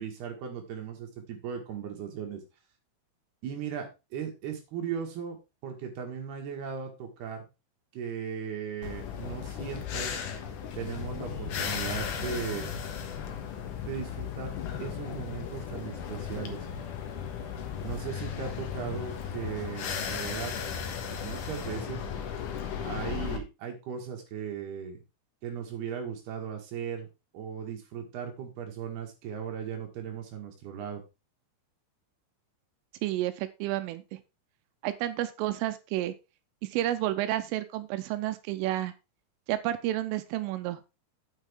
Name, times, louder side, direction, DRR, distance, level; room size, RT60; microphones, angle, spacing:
voice 1, 0.0-2.4 3.4-5.4 5.6-7.5 7.9-10.1 10.8-12.8 13.8-16.7 17.8-20.5 21.2-22.0 22.8-25.0 25.4-27.1 27.3-31.0, right 7 dB, 60° right, 3 dB, 3.4 m, -37 dB
sound 1, 8.8-23.4, left 7 dB, 85° left, 1.8 m, -36 dB
Thunder, 10.7-20.7, left 9 dB, 70° left, 3.1 m, -44 dB
voice 2, 33.0-34.0 34.8-36.1 36.7-38.9 39.5-40.8, right 14 dB, 85° right, 11 dB, 3.3 m, -30 dB
9.1 x 8.3 x 3.7 m, 0.27 s
omnidirectional pair, 5.8 m